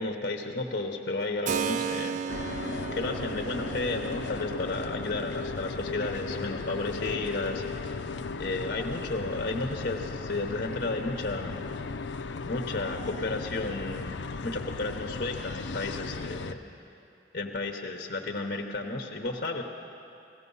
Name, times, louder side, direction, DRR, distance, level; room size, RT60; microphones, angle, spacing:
voice 1, 0.0-2.6 2.9-7.9 8.4-11.9 12.5-14.1 14.4-16.6 17.3-19.6, left 2 dB, 55° left, 3 dB, 0.9 m, -33 dB
Keyboard (musical), 1.4-10.1, right 7 dB, 45° right, 0.4 m, -38 dB
sound 1, 2.3-16.5, left 4 dB, 85° left, 0.5 m, -36 dB
17.5 x 15.0 x 5.5 m, 2.7 s
head